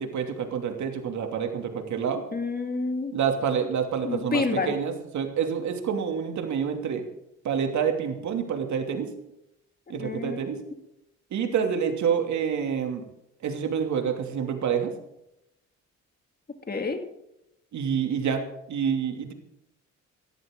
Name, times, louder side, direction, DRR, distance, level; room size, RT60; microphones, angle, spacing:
voice 1, 0.0-2.2 3.1-7.0 7.4-9.1 9.9-10.6 11.3-13.0 13.4-14.9 17.7-18.4 18.7-19.3, right 7 dB, 70° right, 4 dB, 2.8 m, -27 dB
voice 2, 2.3-3.1 4.0-4.7 10.0-10.4 16.7-17.0, left 4 dB, 30° left, 5 dB, 2.5 m, -28 dB
16.5 x 14.0 x 3.9 m, 0.84 s
cardioid pair, 90°, 30 cm